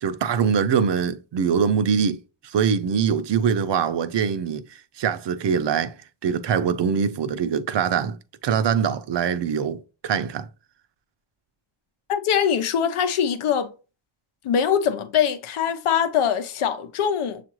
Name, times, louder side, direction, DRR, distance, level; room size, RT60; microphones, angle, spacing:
voice 1, 0.0-5.9 6.2-8.2 8.4-9.8 10.0-10.5, right 7 dB, 60° right, 0.6 m, -23 dB
voice 2, 12.1-13.7 14.4-17.4, left 8 dB, 90° left, 0.7 m, -22 dB
7.0 x 2.5 x 3.0 m
wide cardioid pair, 100°, 49 cm